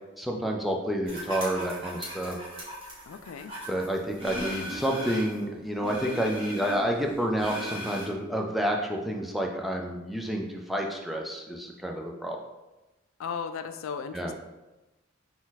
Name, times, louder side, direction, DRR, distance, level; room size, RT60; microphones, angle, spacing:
voice 1, 0.2-2.4 3.7-12.4 14.1-14.3, equal, ahead, 0 dB, 0.3 m, -29 dB
sound 1, 1.1-5.4 5.8-8.1, equal, 30° right, 1.4 m, -38 dB
voice 2, 3.1-3.5 13.2-14.3, left 6 dB, 80° left, 9 dB, 0.3 m, -36 dB
4.0 x 2.4 x 4.0 m, 1.0 s
head